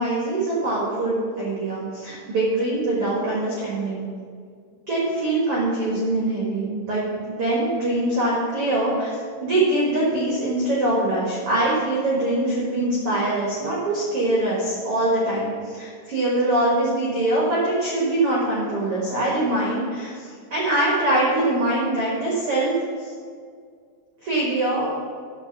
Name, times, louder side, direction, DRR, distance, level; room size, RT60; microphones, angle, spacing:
voice 1, 0.0-4.0 4.9-22.7 23.0-23.1 24.2-24.9, right 1 dB, 80° right, -5 dB, 1.2 m, -23 dB
10.5 x 4.9 x 6.9 m, 2.1 s
omnidirectional pair, 5.3 m